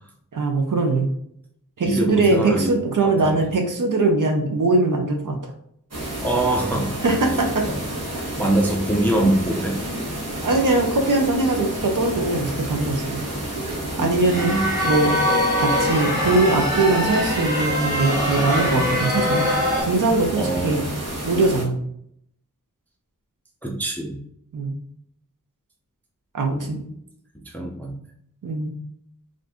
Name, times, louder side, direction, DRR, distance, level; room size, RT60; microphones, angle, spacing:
voice 1, 0.3-1.1 1.8-5.5 7.0-7.6 10.4-13.2 14.0-14.5 14.8-15.2 15.6-19.4 19.8-20.8 21.2-21.8 24.5-24.8 26.3-26.8 28.4-28.7, right 3 dB, 70° right, 3 dB, 0.5 m, -21 dB
voice 2, 1.8-2.7 3.0-3.4 6.2-6.9 7.6-7.8 8.1-9.8 14.0-14.7 20.4-20.9 23.6-24.2 26.5-26.9 27.5-28.0, right 1 dB, 5° left, 0 dB, 0.4 m, -24 dB
sound 1, 5.9-21.6, right 1 dB, 50° right, 1.0 m, -30 dB
sound 2, 14.3-19.8, left 1 dB, 10° right, 1.2 m, -23 dB
2.5 x 2.5 x 3.4 m, 0.71 s
wide cardioid pair, 55°, 33 cm